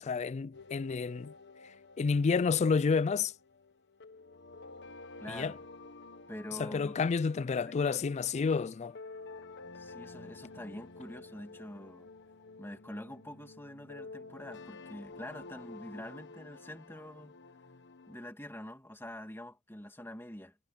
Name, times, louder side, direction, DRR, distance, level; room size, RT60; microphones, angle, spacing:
voice 1, 0.0-1.3 2.0-3.3 5.3-5.5 6.6-9.0, left 5 dB, 30° left, 0.3 m, -29 dB
sound 1, 0.5-18.3, left 3 dB, 55° left, 1.4 m, -51 dB
voice 2, 5.2-5.6 6.3-6.9 7.8-8.0 9.7-12.1 12.6-17.4 18.1-20.6, left 1 dB, 10° left, 2.4 m, -45 dB
head